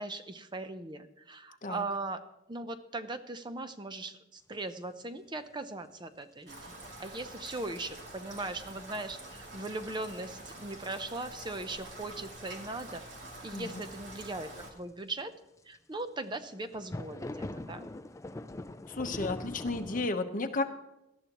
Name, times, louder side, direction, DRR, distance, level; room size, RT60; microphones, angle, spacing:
voice 1, 0.0-2.2 2.5-13.0 13.4-15.3 15.7-17.9, right 2 dB, 25° right, 9 dB, 0.7 m, -39 dB
Rain, 6.5-14.7, right 1 dB, 65° right, 2.6 m, -47 dB
sound 1, 8.7-8.8 11.4-11.5 14.1-14.4 15.7-15.8 16.4-20.1, left 2 dB, 15° left, 0.4 m, -41 dB
voice 2, 13.5-13.8 18.9-20.6, left 3 dB, 45° left, 6 dB, 1.0 m, -33 dB
18.0 x 12.5 x 3.0 m, 0.89 s
head